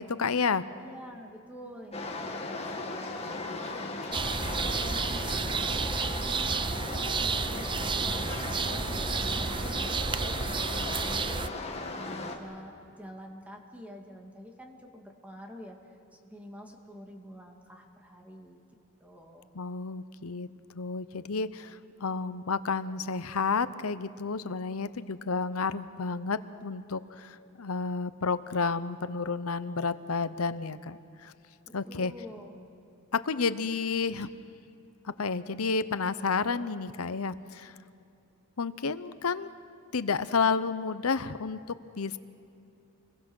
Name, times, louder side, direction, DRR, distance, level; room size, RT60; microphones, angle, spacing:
voice 1, 0.0-0.6 19.5-20.5 20.7-31.3 31.7-32.1 33.1-34.3 35.0-37.7 38.6-39.5 39.9-42.2, left 4 dB, 80° left, 14 dB, 0.8 m, -31 dB
voice 2, 0.8-18.6 19.0-19.5 31.7-32.6, equal, 5° right, 2 dB, 2.2 m, -47 dB
sound 1, 1.9-12.4, left 2 dB, 30° left, 2.0 m, -37 dB
sound 2, 4.1-11.5, right 5 dB, 20° right, 0.5 m, -31 dB
28.0 x 22.0 x 6.3 m, 2.7 s
head